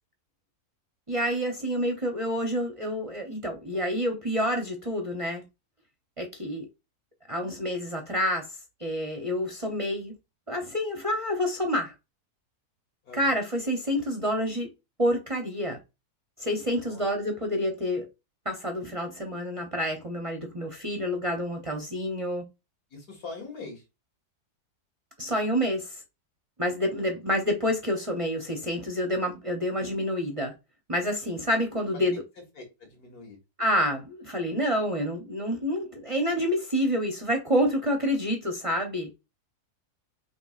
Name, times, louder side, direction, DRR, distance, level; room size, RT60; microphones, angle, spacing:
voice 1, 1.1-5.4 6.2-6.7 7.3-8.5 8.8-10.1 10.5-11.9 13.1-14.7 15.0-15.8 16.4-18.1 18.4-22.5 25.2-26.0 26.6-30.5 30.9-32.2 33.6-39.1, equal, 30° right, 0.7 m, -28 dB
voice 2, 16.7-17.0 22.9-23.8 27.0-27.2 31.9-32.0 32.4-33.4, left 3 dB, 70° left, 2.4 m, -43 dB
5.9 x 3.1 x 2.4 m
omnidirectional pair, 1.7 m